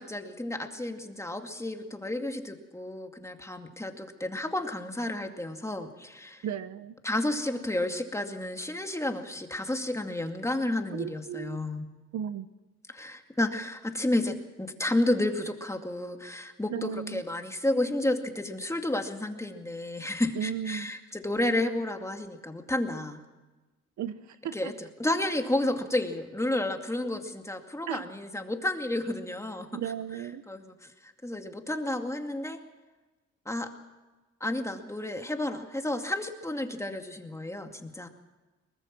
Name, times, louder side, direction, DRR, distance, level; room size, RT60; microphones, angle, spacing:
voice 1, 0.0-6.4 7.0-11.9 12.9-23.2 24.5-29.7 30.5-32.6 33.5-33.7 34.4-38.1, left 1 dB, 10° left, 5 dB, 2.4 m, -31 dB
voice 2, 6.4-7.0 10.9-11.6 12.1-12.5 16.7-17.2 20.4-20.9 24.0-24.7 27.9-28.1 29.7-30.4, right 9 dB, 65° right, 13 dB, 1.0 m, -35 dB
23.0 x 20.0 x 6.2 m, 1.2 s
cardioid pair, 90°, 30 cm